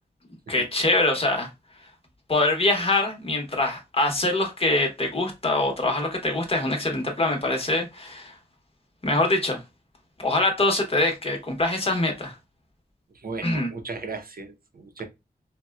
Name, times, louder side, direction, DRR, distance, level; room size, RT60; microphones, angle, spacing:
voice 1, 0.5-1.5 2.3-8.4 9.0-9.6 10.2-12.4 13.4-13.7, left 2 dB, 35° left, 1.0 m, -24 dB
voice 2, 13.1-15.0, right 4 dB, 60° right, 0.7 m, -36 dB
4.1 x 2.2 x 2.3 m
wide cardioid pair, 100°, 18 cm